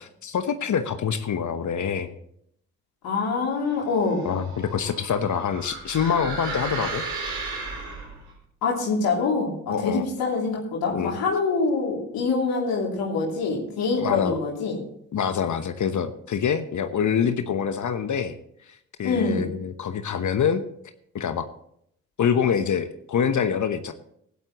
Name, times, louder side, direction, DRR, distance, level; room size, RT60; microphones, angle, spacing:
voice 1, 0.2-2.1 4.2-7.0 9.7-10.0 10.9-11.2 13.9-14.4 15.1-18.3 19.0-20.6 21.1-21.5 22.2-23.9, left 7 dB, 55° left, 9 dB, 1.0 m, -25 dB
voice 2, 3.0-4.3 8.6-14.8 19.0-19.4, left 4 dB, 75° left, -3 dB, 3.0 m, -25 dB
sound 1, 3.9-8.3, right 3 dB, 75° right, 4.6 m, -34 dB
16.5 x 11.5 x 3.0 m, 0.70 s
hypercardioid pair, 45°, 37 cm